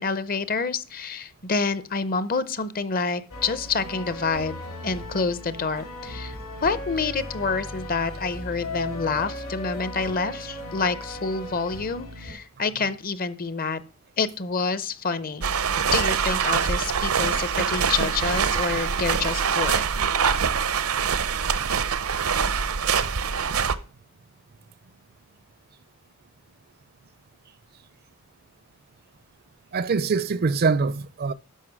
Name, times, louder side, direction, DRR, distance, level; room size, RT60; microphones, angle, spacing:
voice 1, 0.0-6.4 6.6-13.8 14.2-15.4 15.9-19.8, left 4 dB, 45° left, 0.7 m, -27 dB
sound 1, 3.3-12.3, left 1 dB, 80° left, 3.9 m, -37 dB
sound 2, 15.4-23.7, right 6 dB, 85° right, 0.8 m, -24 dB
voice 2, 29.7-31.3, right 4 dB, 45° right, 0.5 m, -23 dB
12.0 x 5.2 x 6.2 m
head